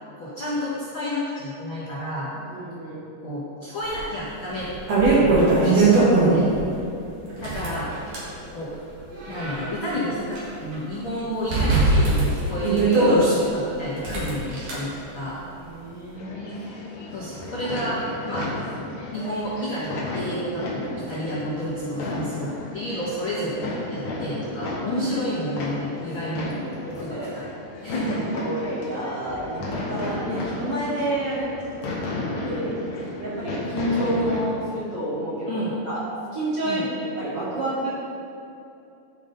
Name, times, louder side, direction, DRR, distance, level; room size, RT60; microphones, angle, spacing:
voice 1, 0.2-2.3 3.2-4.7 5.0-6.4 7.4-7.9 8.5-8.7 9.3-15.4 17.1-18.8 19.1-23.6 23.9-26.5 26.9-27.5 27.8-28.2 35.5-35.7 36.6-36.8, equal, 80° left, -10 dB, 1.1 m, -30 dB
voice 2, 2.5-3.0 6.4-6.9 15.6-16.7 27.1-27.3 28.3-31.5 32.4-32.7 33.2-36.0 36.3-36.9 37.2-37.9, right 1 dB, 35° right, -11 dB, 2.1 m, -29 dB
sound 1, 3.9-4.0 4.5-6.6 7.3-8.3 9.0-10.4 10.7-10.8 11.5-13.3 14.0-14.7, right 3 dB, 50° right, 2.4 m, -20 dB
sound 2, 16.1-34.4, left 2 dB, 60° left, 2.0 m, -33 dB
12.5 x 5.4 x 3.9 m, 2.7 s
omnidirectional pair, 4.8 m